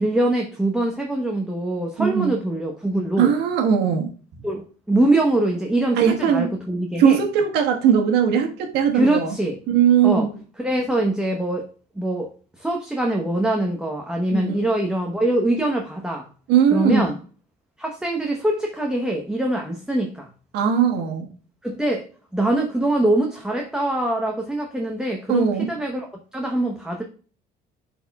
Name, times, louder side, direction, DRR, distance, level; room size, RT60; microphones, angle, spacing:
voice 1, 0.0-3.3 4.4-7.2 8.9-9.6 10.0-10.3 10.6-11.7 11.9-16.3 16.7-17.2 17.8-20.3 21.6-22.1 22.3-27.0, right 1 dB, 5° right, 0.9 m, -23 dB
voice 2, 2.0-2.3 3.2-4.1 6.0-6.5 7.0-9.4 9.7-10.3 14.3-14.6 16.5-17.1 20.5-21.3 25.3-25.7, right 8 dB, 85° right, 1.4 m, -19 dB
11.0 x 4.2 x 2.3 m
cardioid pair, 125°, 17 cm